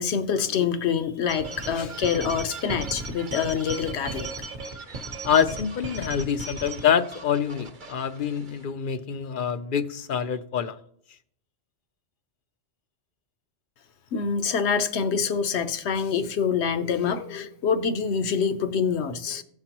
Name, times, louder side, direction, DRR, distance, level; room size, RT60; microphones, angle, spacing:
voice 1, 0.0-4.3 14.1-19.4, left 6 dB, 75° left, 1.0 m, -26 dB
sound 1, 1.3-8.6, right 2 dB, 45° right, 0.9 m, -37 dB
voice 2, 5.2-10.8, left 8 dB, 55° left, 0.6 m, -26 dB
16.0 x 5.8 x 2.9 m
omnidirectional pair, 1.2 m